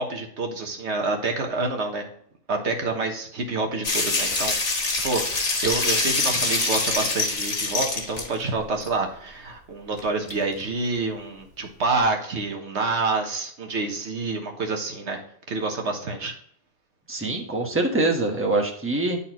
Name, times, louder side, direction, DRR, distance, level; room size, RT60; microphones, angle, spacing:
voice 1, 0.0-2.1 2.5-15.2 15.5-16.3, right 3 dB, 70° right, 3 dB, 1.4 m, -28 dB
sound 1, 3.8-8.3 8.8-8.9 10.0-10.1 10.3-10.4, left 3 dB, 80° left, 1.9 m, -25 dB
voice 2, 17.1-19.2, right 2 dB, 10° right, 0 dB, 1.3 m, -24 dB
11.0 x 4.1 x 3.0 m, 0.64 s
omnidirectional pair, 1.2 m